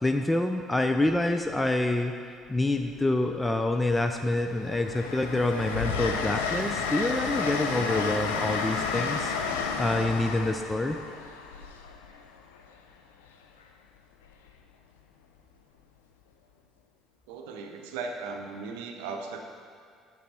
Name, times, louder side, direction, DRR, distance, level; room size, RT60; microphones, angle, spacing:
voice 1, 0.0-2.1 2.5-9.3 9.8-11.0, left 2 dB, 15° left, 5 dB, 0.4 m, -27 dB
Train, 1.1-1.5 2.8-3.5 3.9-12.7 14.3-14.5, left 5 dB, 75° left, 0.4 m, -32 dB
sound 1, 4.3-11.3, equal, 10° right, 1.9 m, -44 dB
voice 2, 17.3-19.4, right 4 dB, 70° right, 4 dB, 0.7 m, -37 dB
8.3 x 6.1 x 4.2 m, 2.3 s
figure-of-eight pair, 55°, 0 cm